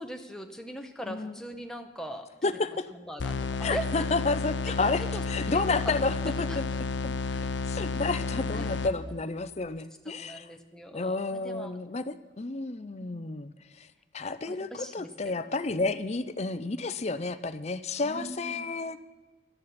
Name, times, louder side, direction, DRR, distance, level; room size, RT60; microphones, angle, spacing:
voice 1, 0.0-2.6 2.9-4.1 4.6-6.8 7.2-8.2 8.5-8.8 10.2-11.8 13.0-13.2 14.5-15.4 15.8-16.0 18.0-18.7, right 1 dB, 5° left, 4 dB, 1.0 m, -41 dB
voice 2, 1.1-1.4 2.4-2.8 3.6-6.6 7.0-7.1 7.7-10.5 10.9-13.5 14.1-19.0, left 3 dB, 35° left, 12 dB, 0.6 m, -31 dB
sound 1, 3.2-9.2, left 4 dB, 85° left, 0.6 m, -32 dB
18.0 x 13.0 x 4.3 m, 1.3 s
head